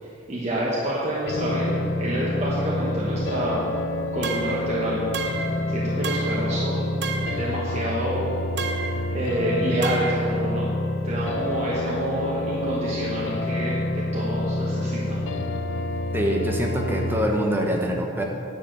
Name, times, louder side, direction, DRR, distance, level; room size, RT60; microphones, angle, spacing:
voice 1, 0.3-3.7 4.1-5.0 5.7-7.0 7.4-8.4 9.1-10.7 11.0-15.2, right 1 dB, 35° right, -6 dB, 1.3 m, -28 dB
sound 1, 1.3-17.3, left 1 dB, 75° left, 0.6 m, -28 dB
sound 2, 4.2-4.7 5.1-5.6 6.0-6.5 7.0-7.5 8.6-9.0 9.8-10.3, right 5 dB, 60° right, 0.7 m, -31 dB
voice 2, 16.1-18.2, equal, 10° right, 0 dB, 0.9 m, -24 dB
10.0 x 5.0 x 7.8 m, 2.7 s
head